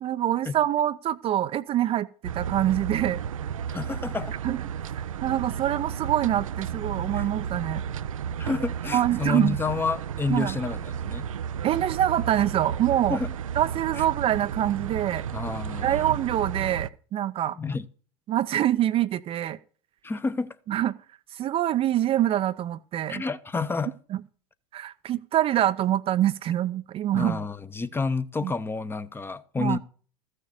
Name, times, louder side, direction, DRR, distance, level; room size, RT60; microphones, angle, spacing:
voice 1, 0.0-2.1 2.3-3.2 4.4-4.6 5.2-7.8 8.9-9.6 10.3-10.6 11.6-13.2 13.6-15.2 15.8-17.6 18.3-19.6 20.7-20.9 21.3-23.2 24.1-24.2 24.7-27.4 28.4-28.5 29.6-29.8, right 12 dB, 35° right, 0.6 m, -25 dB
sound 1, 2.2-16.9, right 8 dB, 80° right, 0.5 m, -33 dB
voice 2, 3.7-4.4 7.1-7.3 8.4-11.3 13.1-13.3 14.0-14.1 15.3-16.2 17.6-17.8 20.0-20.6 23.1-23.9 27.1-29.8, left 4 dB, 15° left, 0.8 m, -29 dB
14.0 x 6.6 x 7.0 m
hypercardioid pair, 95°, 17 cm